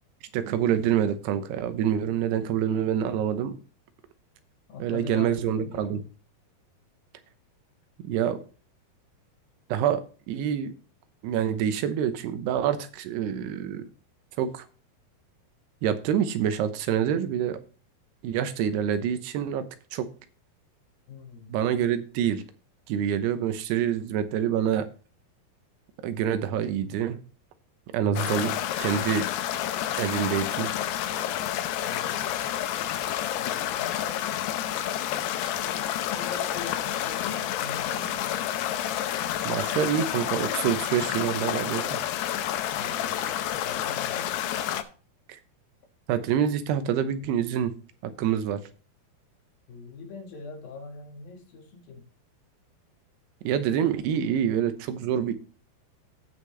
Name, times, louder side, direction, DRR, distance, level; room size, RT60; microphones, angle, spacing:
voice 1, 0.3-3.6 4.8-6.0 8.0-8.4 9.7-10.7 11.2-13.9 14.4-14.7 15.8-17.6 18.2-19.7 19.9-20.1 21.5-22.4 22.9-24.9 26.0-27.2 27.9-29.2 30.0-30.7 39.4-42.0 45.3-45.4 46.1-47.7 48.0-48.6 53.4-55.3, right 9 dB, 90° right, 10 dB, 3.0 m, -26 dB
voice 2, 4.7-6.0 21.1-21.6 31.8-32.4 33.4-34.4 35.5-38.3 42.7-44.3 49.7-52.0, left 4 dB, 65° left, 2 dB, 3.5 m, -42 dB
sound 1, 28.2-44.8, left 11 dB, 85° left, 2.9 m, -29 dB
16.0 x 5.4 x 3.3 m, 0.37 s
omnidirectional pair, 4.6 m